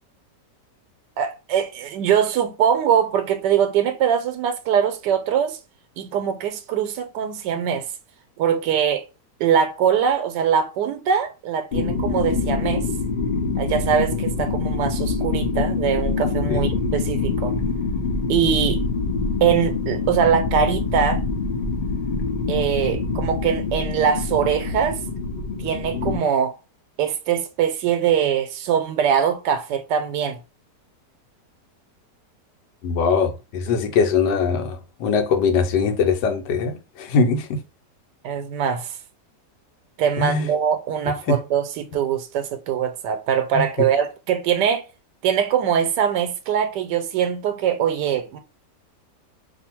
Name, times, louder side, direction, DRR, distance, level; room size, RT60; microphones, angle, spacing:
voice 1, 1.2-5.6 6.0-7.9 8.4-9.1 9.4-12.9 13.6-17.5 18.3-18.8 19.4-21.3 22.5-25.0 25.6-26.6 27.0-30.4 38.2-39.0 40.0-44.8 45.2-48.4, right 8 dB, 85° right, 1.2 m, -22 dB
sound 1, 11.7-26.2, left 4 dB, 50° left, 0.6 m, -25 dB
voice 2, 32.8-37.6 40.2-40.5 41.0-41.3 43.5-43.9, left 5 dB, 80° left, 1.3 m, -22 dB
2.7 x 2.6 x 4.3 m
omnidirectional pair, 1.8 m